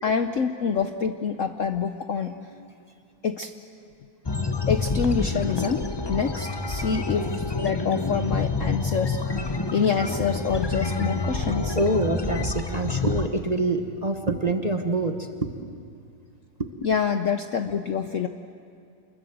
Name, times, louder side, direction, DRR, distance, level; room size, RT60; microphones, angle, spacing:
voice 1, 0.0-2.4 3.2-3.5 4.7-9.2 9.7-11.8 16.8-18.3, left 6 dB, 60° left, 7 dB, 0.9 m, -26 dB
sound 1, 4.2-13.3, left 3 dB, 40° left, 0.3 m, -28 dB
voice 2, 11.7-15.5 16.6-16.7, right 2 dB, 25° right, 4 dB, 1.0 m, -26 dB
28.5 x 21.5 x 7.9 m, 2.5 s
omnidirectional pair, 2.0 m